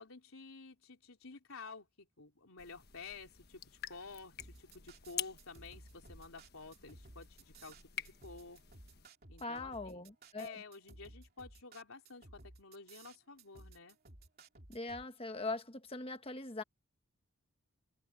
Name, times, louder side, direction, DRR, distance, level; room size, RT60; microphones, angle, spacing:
voice 1, 0.0-8.6 9.3-10.0 10.3-14.0, left 4 dB, 75° left, 3.4 m, -51 dB
sound 1, 2.6-9.1, left 10 dB, 45° left, 1.3 m, -48 dB
sound 2, 4.4-15.1, right 2 dB, 45° right, 2.8 m, -56 dB
voice 2, 9.4-10.6 14.7-16.6, left 2 dB, 25° left, 1.3 m, -41 dB
head